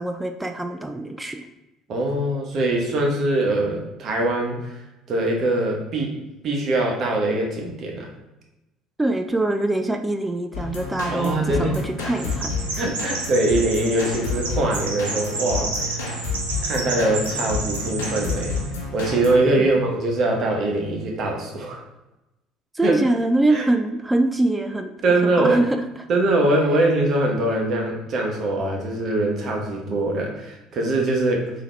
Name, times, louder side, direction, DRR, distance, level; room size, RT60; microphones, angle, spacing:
voice 1, 0.0-1.5 9.0-12.8 19.6-19.9 22.7-24.9 25.4-25.8, right 2 dB, 10° right, 5 dB, 0.4 m, -23 dB
voice 2, 1.9-4.8 5.1-6.2 6.4-8.1 11.1-11.7 12.8-16.0 16.6-18.6 18.9-21.8 22.8-23.0 23.5-23.7 25.0-25.6 26.1-31.5, right 2 dB, 50° right, 0 dB, 1.0 m, -22 dB
sound 1, 10.5-19.4, left 3 dB, 80° left, 0.7 m, -30 dB
Chirp tweet, 12.1-18.7, right 3 dB, 85° right, 0.7 m, -31 dB
3.9 x 2.8 x 3.2 m, 0.96 s
hypercardioid pair, 65°, 0 cm